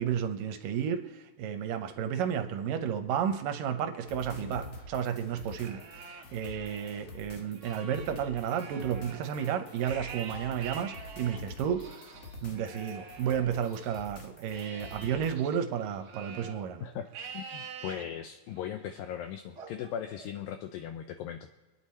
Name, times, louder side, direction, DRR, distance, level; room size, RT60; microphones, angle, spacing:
voice 1, 0.0-12.0 12.4-16.9, right 8 dB, 75° right, 7 dB, 2.1 m, -32 dB
sound 1, 4.0-15.3, left 1 dB, 55° left, 2.0 m, -47 dB
Livestock farm animals working animals, 5.4-7.0 7.5-14.0 14.5-16.6 17.1-18.0 18.6-19.0 19.6-20.6, right 5 dB, 55° right, 1.8 m, -46 dB
voice 2, 17.3-21.5, left 9 dB, 80° left, 7 dB, 2.1 m, -38 dB
26.5 x 9.7 x 4.3 m, 1.2 s
omnidirectional pair, 4.6 m